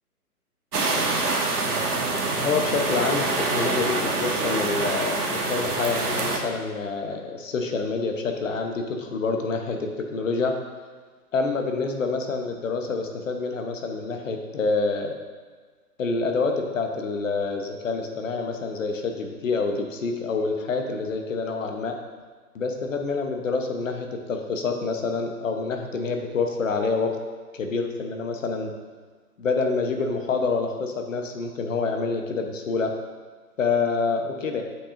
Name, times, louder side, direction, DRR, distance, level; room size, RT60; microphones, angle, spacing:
sound 1, 0.7-6.4, right 3 dB, 75° right, 1.2 m, -25 dB
voice 1, 2.4-3.3 3.5-10.6 11.3-15.1 16.0-22.0 22.5-27.1 27.5-28.7 29.4-32.9 33.6-34.6, left 4 dB, 55° left, 4 dB, 1.0 m, -27 dB
7.8 x 6.0 x 2.6 m, 1.5 s
hypercardioid pair, 150°, 46 cm